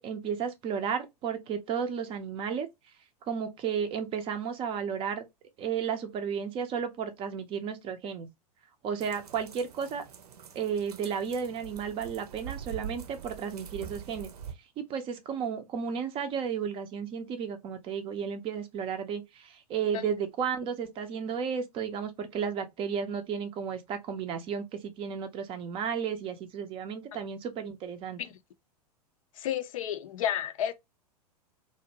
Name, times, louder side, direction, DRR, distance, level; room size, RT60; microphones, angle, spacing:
voice 1, 0.0-2.7 3.2-5.2 5.6-8.3 8.8-10.0 10.5-14.3 14.8-28.2, right 7 dB, 25° right, 0.4 m, -33 dB
sound 1, 9.0-14.5, right 8 dB, 75° right, 0.6 m, -44 dB
voice 2, 29.4-30.7, left 10 dB, 55° left, 0.4 m, -31 dB
2.6 x 2.1 x 2.7 m
figure-of-eight pair, 90°, 20 cm